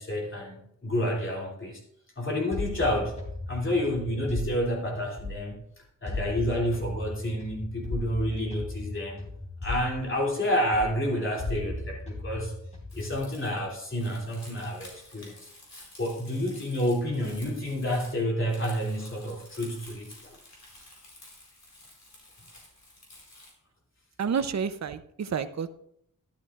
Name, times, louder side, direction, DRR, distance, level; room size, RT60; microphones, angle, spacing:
voice 1, 0.0-1.8 2.2-3.2 3.5-5.6 6.0-9.2 9.6-12.5 12.9-15.5 16.0-20.1, equal, 40° left, -2 dB, 2.9 m, -29 dB
sound 1, 2.5-5.6 6.1-10.5 10.7-13.2, left 1 dB, 20° left, 3.4 m, -37 dB
Crumpling crinkling, 12.9-23.5, left 1 dB, 55° left, 4.9 m, -51 dB
voice 2, 24.2-25.7, right 6 dB, 55° right, 10 dB, 0.7 m, -29 dB
13.0 x 12.0 x 2.5 m, 0.73 s
wide cardioid pair, 110°, 33 cm